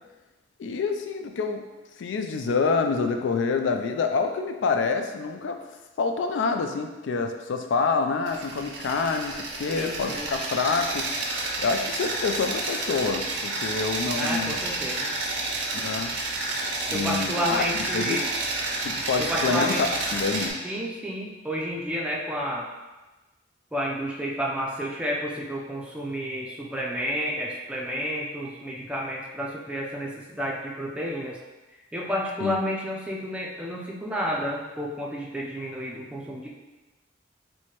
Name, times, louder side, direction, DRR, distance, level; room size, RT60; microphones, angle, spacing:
voice 1, 0.6-1.7 2.0-5.6 6.0-11.1 11.6-14.5 15.8-16.1 16.9-18.2 18.8-19.9 20.1-20.6 32.4-32.6, left 4 dB, 80° left, 6 dB, 0.3 m, -27 dB
sound 1, 8.3-20.5, right 2 dB, 85° right, 0.6 m, -30 dB
voice 2, 9.7-10.3 14.2-15.1 16.9-18.2 19.2-19.9 20.6-22.7 23.7-31.4 31.9-36.5, equal, 5° right, -4 dB, 0.4 m, -30 dB
4.6 x 2.1 x 2.9 m, 1.1 s
head